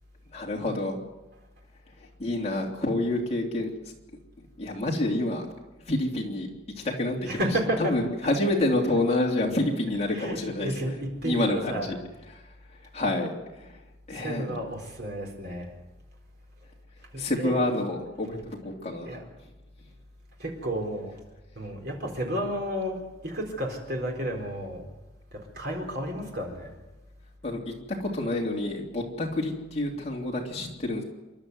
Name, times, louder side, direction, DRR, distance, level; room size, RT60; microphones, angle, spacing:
voice 1, 0.3-1.0 2.2-3.7 4.6-5.5 5.9-6.5 6.8-7.4 7.8-10.9 11.2-12.0 12.9-13.3 14.1-14.4 17.2-19.2 27.4-27.6 28.0-31.0, left 1 dB, 30° left, -2 dB, 3.3 m, -28 dB
voice 2, 7.3-7.9 10.1-11.9 14.1-15.7 17.1-17.6 19.1-19.2 20.4-21.1 21.6-24.9 25.3-26.8, equal, 50° right, 2 dB, 4.1 m, -32 dB
28.0 x 12.0 x 8.0 m, 1.1 s
head